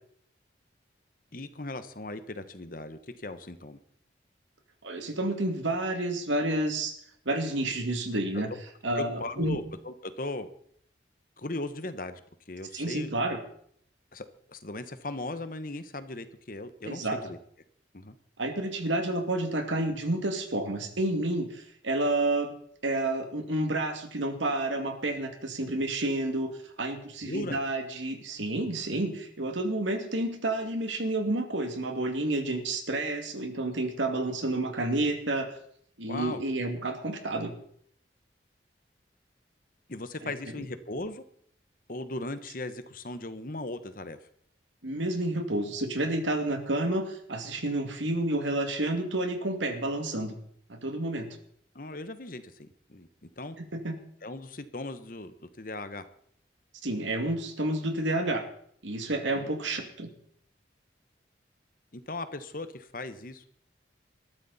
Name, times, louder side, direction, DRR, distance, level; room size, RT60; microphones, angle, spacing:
voice 1, 1.3-3.8 8.3-8.4 9.0-10.5 11.4-12.2 12.5-13.1 14.1-17.4 17.9-18.1 27.2-27.6 36.1-36.4 39.9-41.2 41.9-44.2 51.7-53.1 53.4-53.6 54.2-56.1 59.3-59.5 61.9-63.4, left 2 dB, 50° left, 11 dB, 1.2 m, -38 dB
voice 2, 4.8-7.0 7.3-8.5 8.8-9.6 12.7-13.4 16.8-17.2 18.4-22.6 22.8-35.6 36.0-37.5 44.8-50.4 50.7-51.3 53.6-54.0 56.8-58.4 58.8-60.1, right 2 dB, 90° right, 5 dB, 2.5 m, -30 dB
20.0 x 13.5 x 4.3 m, 0.65 s
head